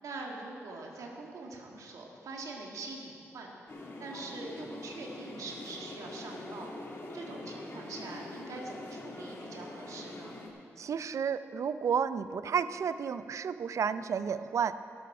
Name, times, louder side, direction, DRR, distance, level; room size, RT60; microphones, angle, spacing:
voice 1, 0.0-3.5 4.0-6.7 7.1-10.4, right 3 dB, 85° right, 0 dB, 1.9 m, -43 dB
sound 1, 3.7-10.5, left 2 dB, 50° left, 1.9 m, -44 dB
voice 2, 10.8-14.7, right 7 dB, 65° right, 13 dB, 0.5 m, -31 dB
13.0 x 12.0 x 4.8 m, 2.6 s
cardioid pair, 70°, 6 cm